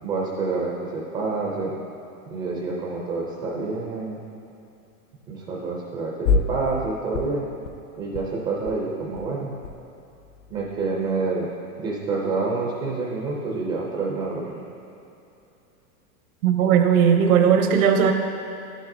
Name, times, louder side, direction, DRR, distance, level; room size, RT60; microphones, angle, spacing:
voice 1, 0.0-1.7 2.3-4.2 5.3-7.5 8.0-9.6 10.5-11.5 11.8-14.7, right 3 dB, 15° right, -3 dB, 0.4 m, -28 dB
sound 1, 6.2-6.9 7.1-7.8 8.1-8.2 8.5-8.7 9.0-9.8 10.1-11.0, left 5 dB, 60° left, 0.7 m, -27 dB
voice 2, 16.4-18.1, right 7 dB, 70° right, 5 dB, 0.9 m, -17 dB
10.0 x 7.4 x 2.6 m, 2.9 s
supercardioid pair, 150°, 44 cm